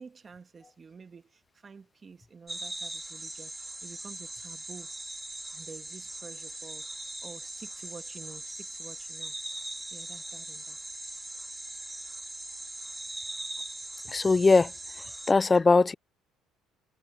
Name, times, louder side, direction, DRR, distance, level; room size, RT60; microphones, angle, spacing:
voice 1, 0.0-4.9 5.5-6.9 7.2-9.4 9.9-10.8, right 5 dB, 35° right, 1.8 m, -49 dB
sound 1, 2.5-15.3, right 1 dB, 10° right, 2.6 m, -40 dB
voice 2, 14.1-14.7 15.3-15.9, left 3 dB, 25° left, 0.3 m, -20 dB
supercardioid pair, 80°, 0 cm